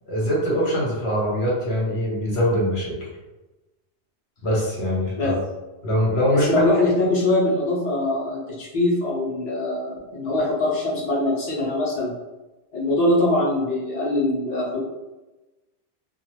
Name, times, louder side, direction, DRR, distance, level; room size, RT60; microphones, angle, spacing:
voice 1, 0.1-3.0 4.4-5.3 5.8-6.6, equal, 70° left, -4 dB, 1.2 m, -22 dB
voice 2, 6.4-12.1 12.7-14.8, left 1 dB, 40° left, -7 dB, 0.9 m, -22 dB
2.5 x 2.5 x 3.0 m, 1.1 s
omnidirectional pair, 1.1 m